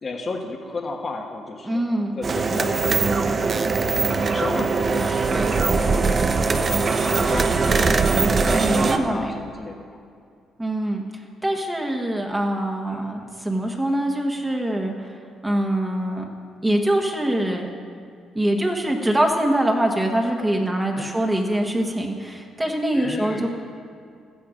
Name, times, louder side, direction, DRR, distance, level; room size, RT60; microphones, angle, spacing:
voice 1, 0.0-3.5 4.0-6.1 6.5-10.0 12.8-13.0 20.9-21.1 22.9-23.5, left 3 dB, 40° left, 1 dB, 1.4 m, -33 dB
voice 2, 1.6-2.1 8.5-9.4 10.6-11.0 11.4-14.9 15.4-16.2 16.6-17.7 18.3-23.5, right 1 dB, 15° right, 1 dB, 1.5 m, -23 dB
sound 1, 2.2-9.0, right 4 dB, 40° right, 0.8 m, -21 dB
13.5 x 10.0 x 5.1 m, 2.3 s
cardioid pair, 90°, 0 cm